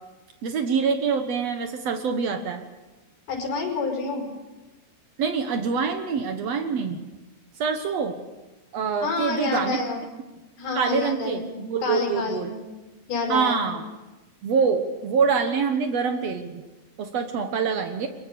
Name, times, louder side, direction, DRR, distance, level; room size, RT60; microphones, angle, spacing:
voice 1, 0.4-2.6 5.2-7.0 7.6-8.2 8.7-9.8 10.7-12.5 13.3-13.8 14.4-16.6 17.0-18.1, right 5 dB, 90° right, 6 dB, 1.4 m, -25 dB
voice 2, 3.3-4.2 9.0-10.1 10.6-12.6 13.1-13.6, left 3 dB, 60° left, 2 dB, 7.3 m, -28 dB
23.5 x 22.5 x 6.9 m, 1.1 s
omnidirectional pair, 5.1 m